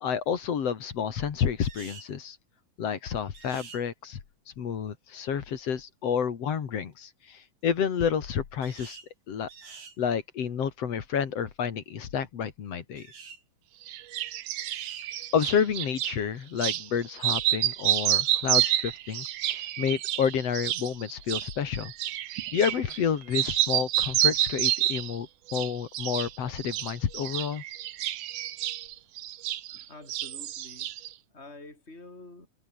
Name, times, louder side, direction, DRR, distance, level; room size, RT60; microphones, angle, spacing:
voice 1, 0.0-2.4 2.8-4.2 4.6-9.0 9.3-9.5 10.0-13.1 15.3-21.9 22.5-27.6, left 7 dB, 50° left, 2.9 m, -30 dB
sound 1, 1.6-2.1 3.3-3.8 8.6-9.1 9.5-10.0 13.0-13.4 14.6-15.1, right 5 dB, 90° right, 6.7 m, -47 dB
sound 2, 13.9-16.2 16.6-16.9 17.2-23.1 23.3-25.2 25.5-26.3 26.6-29.8 30.1-31.1, right 13 dB, 70° right, 2.6 m, -29 dB
voice 2, 29.9-30.9 31.3-32.5, left 2 dB, 15° left, 7.1 m, -47 dB
open air
omnidirectional pair, 3.9 m